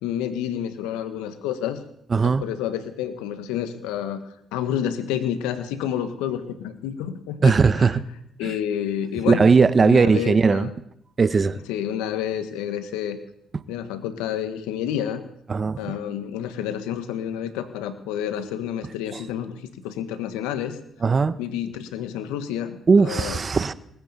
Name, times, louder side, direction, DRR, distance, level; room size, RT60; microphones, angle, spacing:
voice 1, 0.0-1.8 2.2-4.2 4.5-7.9 8.4-9.5 9.8-10.7 11.7-13.2 13.7-15.2 15.8-20.8 21.4-23.4, left 10 dB, 80° left, 1.5 m, -29 dB
voice 2, 2.1-2.4 7.4-8.0 8.4-8.5 9.3-10.7 11.2-11.6 15.5-15.9 21.0-21.4 22.9-23.7, right 4 dB, 40° right, 1.0 m, -18 dB
19.5 x 8.7 x 7.1 m
hypercardioid pair, 55°, 0 cm